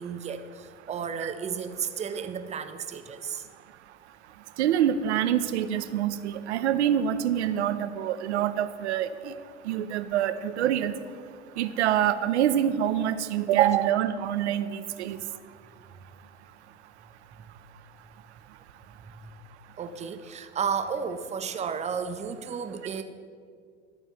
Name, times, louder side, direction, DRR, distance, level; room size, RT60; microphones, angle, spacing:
voice 1, 0.0-3.5 17.3-17.6 19.1-19.4 19.8-23.0, right 6 dB, 20° right, 9 dB, 0.5 m, -33 dB
voice 2, 4.6-9.3 9.6-11.0 11.6-15.2, right 10 dB, 70° right, 12 dB, 0.6 m, -26 dB
11.5 x 4.4 x 5.6 m, 2.1 s
figure-of-eight pair, 80°, 36 cm